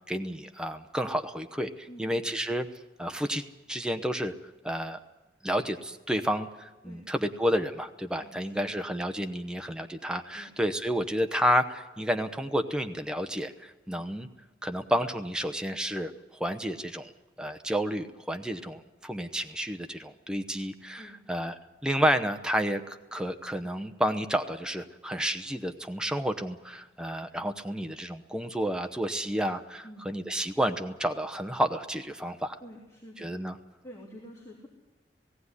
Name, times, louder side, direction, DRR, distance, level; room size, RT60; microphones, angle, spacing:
voice 1, 0.1-2.7 3.0-3.4 3.7-4.3 4.6-5.0 5.4-14.3 14.6-16.1 16.4-17.1 17.4-32.5 33.2-33.5, equal, 5° right, 7 dB, 0.8 m, -30 dB
voice 2, 1.9-2.2 6.8-7.1 8.2-8.7 10.3-10.5 21.0-21.2 29.8-30.1 32.6-33.3 33.8-34.7, equal, 20° left, -2 dB, 2.9 m, -48 dB
18.0 x 16.5 x 9.7 m, 1.1 s
head